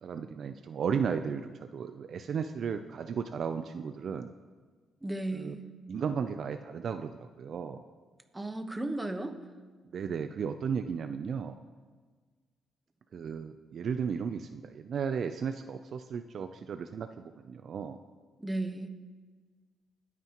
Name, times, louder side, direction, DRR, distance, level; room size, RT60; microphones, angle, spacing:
voice 1, 0.0-4.3 5.3-5.5 5.9-7.8 9.9-11.6 13.1-18.0, right 6 dB, 55° right, 9 dB, 0.5 m, -35 dB
voice 2, 5.0-5.7 8.3-9.4 18.4-18.9, right 2 dB, 15° right, 6 dB, 1.2 m, -34 dB
20.5 x 9.4 x 3.0 m, 1.5 s
cardioid pair, 90°, 0 cm